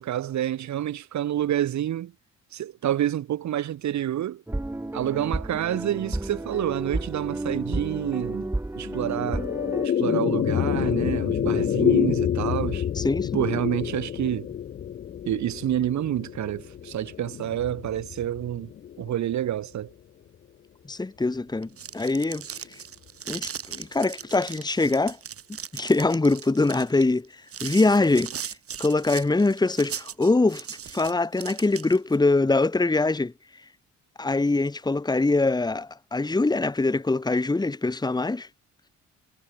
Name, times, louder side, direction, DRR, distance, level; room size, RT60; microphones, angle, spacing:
voice 1, 0.0-2.1 2.5-4.4 4.9-8.5 8.8-9.5 9.8-12.9 13.3-14.5 15.2-18.7 19.0-19.9, right 11 dB, 70° right, 2.5 m, -28 dB
sound 1, 4.5-9.9, right 2 dB, 10° right, 1.1 m, -31 dB
sound 2, 8.8-19.3, left 9 dB, 35° left, 0.4 m, -28 dB
voice 2, 12.9-13.4 20.9-22.4 23.3-25.2 25.7-27.3 27.6-28.5 28.8-30.7 30.9-33.3 34.2-38.5, left 3 dB, 15° left, 1.6 m, -23 dB
sound 3, 21.6-32.2, right 8 dB, 50° right, 1.8 m, -38 dB
cardioid pair, 90°, 30 cm